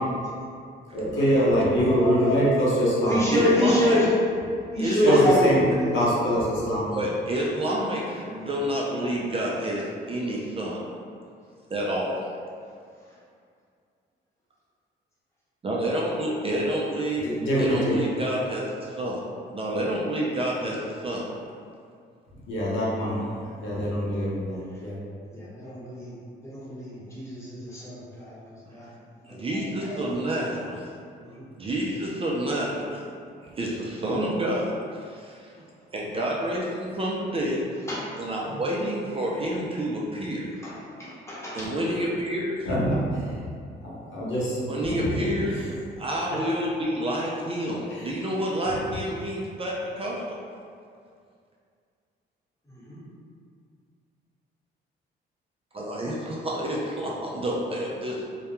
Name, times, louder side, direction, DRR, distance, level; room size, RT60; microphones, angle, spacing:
voice 1, 0.9-3.2 5.0-5.6 5.9-6.9 17.2-18.0 22.5-23.2 23.6-25.0 42.6-43.0 43.4-43.5 43.8-44.6 44.9-45.2 47.9-48.0, equal, 75° left, -7 dB, 0.8 m, -24 dB
voice 2, 1.8-2.3 3.0-4.1 4.7-6.0 23.4-23.5 25.3-26.1 26.4-28.9 29.3-30.2 31.2-31.5 37.9-38.0 38.4-38.8 40.6-40.7 41.0-41.7 52.7-53.0, left 1 dB, 15° left, -9 dB, 1.0 m, -27 dB
voice 3, 3.3-4.0 4.8-5.3 6.9-10.9 11.7-12.3 15.6-17.3 17.5-19.2 19.5-21.3 29.3-30.9 31.6-33.0 33.6-35.4 35.9-37.6 38.2-40.5 41.5-42.7 44.7-50.4 55.7-58.3, right 1 dB, 30° right, -4 dB, 0.4 m, -29 dB
2.2 x 2.1 x 2.9 m, 2.3 s
cardioid pair, 90°, 20 cm